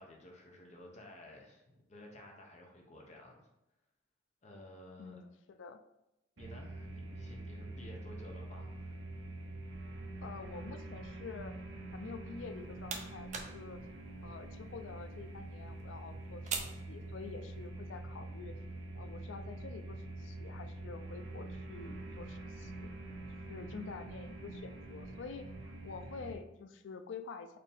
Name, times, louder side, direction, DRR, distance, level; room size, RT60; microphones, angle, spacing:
voice 1, 0.0-3.5 4.4-5.2 6.4-9.0, left 1 dB, 40° left, 0 dB, 0.7 m, -53 dB
voice 2, 5.0-5.8 10.2-11.5 11.9-13.8 14.2-18.6 18.9-22.9 23.5-27.6, left 5 dB, 75° left, 9 dB, 0.4 m, -48 dB
sound 1, 6.4-26.3, right 2 dB, 80° right, 0.7 m, -45 dB
sound 2, 12.4-17.7, right 5 dB, 40° right, 0.5 m, -46 dB
4.2 x 2.6 x 3.4 m, 0.91 s
head